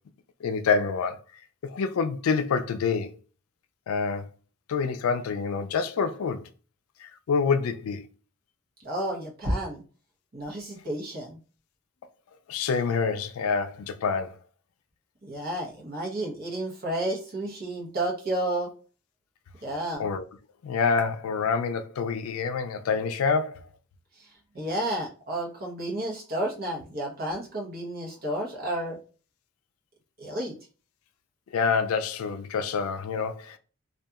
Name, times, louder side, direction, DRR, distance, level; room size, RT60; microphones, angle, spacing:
voice 1, 0.4-1.2 1.6-3.2 3.9-4.3 4.7-6.5 7.0-8.1 12.5-14.4 20.0-20.2 20.6-23.7 31.5-33.6, left 5 dB, 90° left, 0.4 m, -27 dB
voice 2, 8.8-9.8 10.3-11.4 15.2-18.7 19.6-20.1 24.2-24.3 24.5-29.0 30.2-30.5, right 1 dB, 45° right, 0.8 m, -31 dB
2.7 x 2.4 x 2.3 m
head